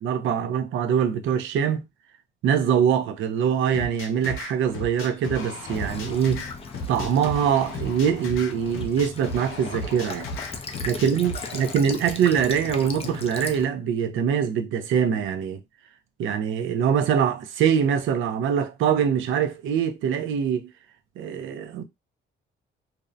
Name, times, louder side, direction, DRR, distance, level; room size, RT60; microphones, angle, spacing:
voice 1, 0.0-1.8 2.4-6.5 6.9-10.3 10.8-15.6 16.2-20.7 21.2-21.8, right 8 dB, 80° right, 0.5 m, -23 dB
sound 1, 3.7-11.7, left 1 dB, 85° left, 0.6 m, -36 dB
Child speech kid speaking / Bird vocalization bird call bird song / Stream, 5.7-13.7, left 4 dB, 30° left, 0.5 m, -37 dB
2.5 x 2.0 x 2.6 m
cardioid pair, 90°, 20 cm